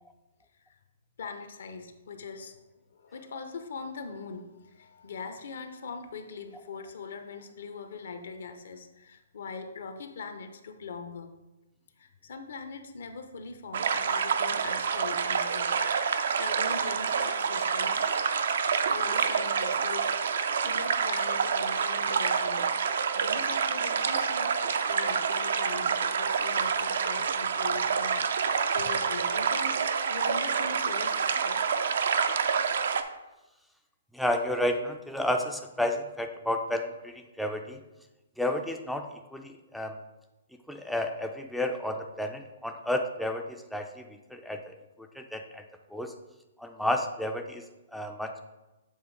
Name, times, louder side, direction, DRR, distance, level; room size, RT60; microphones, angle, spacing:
voice 1, 1.2-2.6 2.9-11.3 12.0-15.7 16.3-18.3 18.6-20.1 20.6-29.8 30.1-31.6, left 4 dB, 70° left, 7 dB, 0.8 m, -41 dB
sound 1, 13.7-33.0, right 6 dB, 65° right, 0.5 m, -27 dB
voice 2, 34.1-37.8 38.4-39.0 39.3-40.0 40.7-44.0 44.3-44.7 45.2-45.6 45.9-46.1 46.6-47.6 47.9-48.4, left 1 dB, ahead, 3 dB, 0.4 m, -31 dB
7.3 x 3.1 x 4.7 m, 1.0 s
hypercardioid pair, 140°, 0 cm